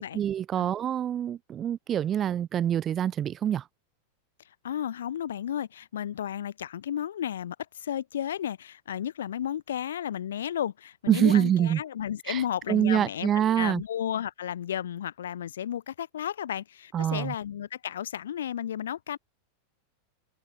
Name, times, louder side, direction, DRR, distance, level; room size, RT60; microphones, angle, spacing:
voice 1, 0.0-3.6 11.1-11.8 12.3-12.4 12.7-13.8 16.9-17.3, right 10 dB, 30° right, 0.3 m, -25 dB
voice 2, 4.6-19.2, left 10 dB, 75° left, 0.4 m, -33 dB
open air
hypercardioid pair, 95°, 0 cm